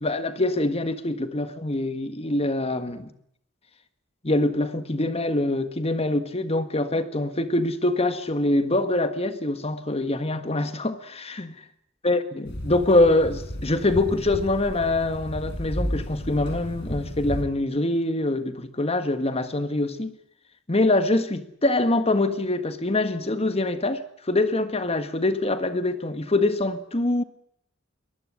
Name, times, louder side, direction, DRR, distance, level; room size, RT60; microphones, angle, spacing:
voice 1, 0.0-3.1 4.2-11.5 12.0-12.2 12.6-20.1 20.7-27.2, left 2 dB, 30° left, 1.7 m, -24 dB
sound 1, 12.5-17.4, equal, 60° left, 5.6 m, -33 dB
23.0 x 20.0 x 9.8 m
head